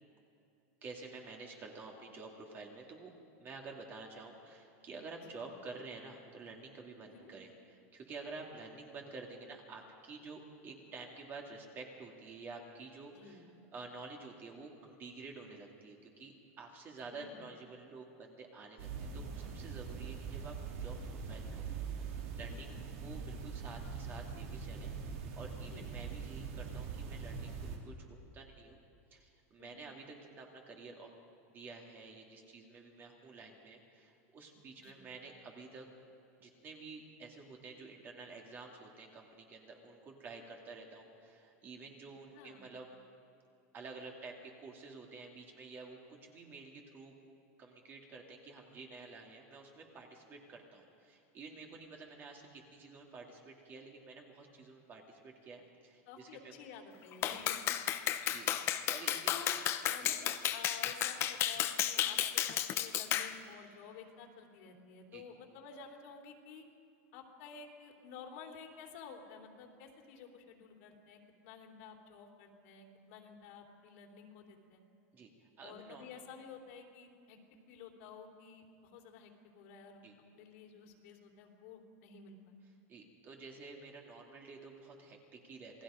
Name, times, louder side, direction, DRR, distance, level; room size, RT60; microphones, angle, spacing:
voice 1, 0.8-21.7 22.3-28.8 29.1-31.1 31.5-35.9 36.4-42.9 43.7-47.1 47.6-56.6 57.3-57.4 58.3-59.3 60.0-60.1 65.1-65.2 75.1-75.3 75.6-76.1 80.0-80.1 82.9-85.8, right 3 dB, 25° right, 1 dB, 2.6 m, -50 dB
voice 2, 13.1-13.4 17.1-17.4 22.4-22.6 25.7-25.9 29.6-29.8 34.8-35.0 42.3-42.6 56.1-57.6 58.3-58.5 59.3-66.6 67.1-74.8 75.6-77.4 77.7-80.0 80.3-82.4, left 6 dB, 60° left, 2 dB, 3.2 m, -52 dB
sound 1, 18.8-27.8, right 5 dB, 70° right, 3.3 m, -42 dB
Clapping, 57.2-63.3, left 11 dB, 35° left, 0.9 m, -33 dB
28.0 x 19.0 x 5.1 m, 2.7 s
supercardioid pair, 160°, 8 cm